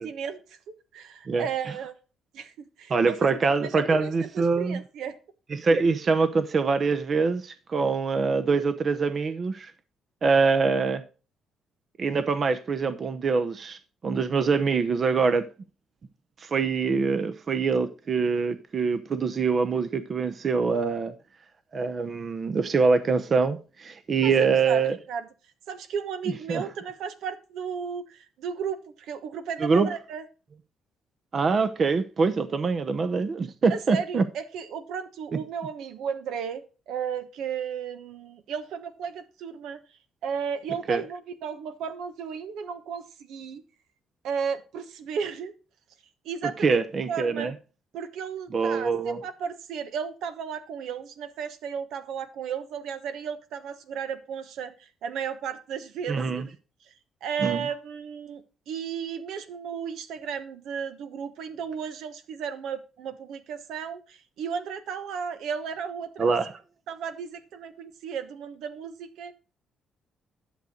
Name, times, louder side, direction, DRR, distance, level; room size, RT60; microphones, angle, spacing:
voice 1, 0.0-2.0 2.3-3.3 3.6-5.2 24.2-25.3 25.7-30.2 33.7-39.8 40.2-43.6 44.2-45.5 46.2-46.8 47.1-47.5 47.9-56.4 56.8-56.9 57.2-66.3 66.9-69.3, right 7 dB, 80° right, 1.2 m, -34 dB
voice 2, 2.9-4.8 5.5-9.7 10.2-11.0 12.0-15.5 16.4-21.1 21.7-25.0 26.5-26.6 29.6-29.9 31.3-34.2 40.9-41.0 46.6-47.5 48.5-49.2 56.1-56.4 57.4-57.7 66.2-66.5, right 4 dB, 40° right, 0.8 m, -24 dB
11.5 x 6.5 x 3.9 m
cardioid pair, 125°, 0 cm